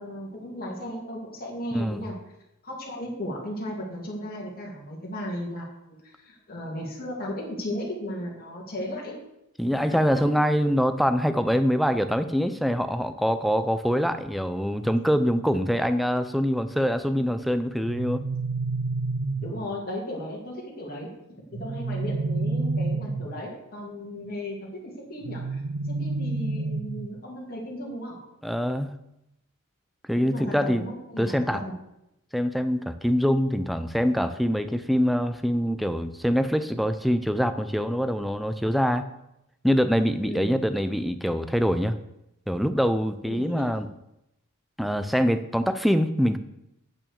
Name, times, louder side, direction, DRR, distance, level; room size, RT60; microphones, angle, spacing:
voice 1, 0.0-2.1 2.6-9.2 9.7-10.4 19.4-21.1 21.6-25.6 25.9-28.2 30.2-31.7 40.2-40.6 43.2-43.7, left 1 dB, 45° left, -4 dB, 2.2 m, -35 dB
voice 2, 9.6-18.2 28.4-28.9 30.1-30.9 31.2-31.6 32.3-39.1 39.6-42.0 42.5-43.9 44.8-46.4, equal, ahead, 10 dB, 0.5 m, -24 dB
sound 1, 17.8-19.8 21.5-23.5 25.2-27.2, right 3 dB, 75° right, 0.5 m, -29 dB
8.7 x 5.8 x 7.0 m, 0.85 s
head